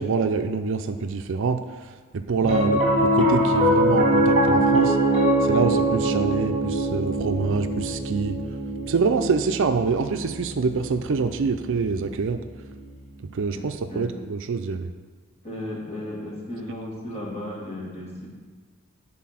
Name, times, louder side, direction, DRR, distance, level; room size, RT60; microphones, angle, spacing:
voice 1, 0.0-1.6 2.1-5.0 5.4-8.4 8.9-12.4 13.2-14.9, right 4 dB, 60° right, 8 dB, 0.5 m, -25 dB
Piano, 2.4-12.9, right 1 dB, 30° right, 1.4 m, -23 dB
voice 2, 13.5-14.2 15.4-18.3, left 1 dB, 30° left, -3 dB, 1.9 m, -35 dB
9.4 x 4.2 x 5.7 m, 1.4 s
head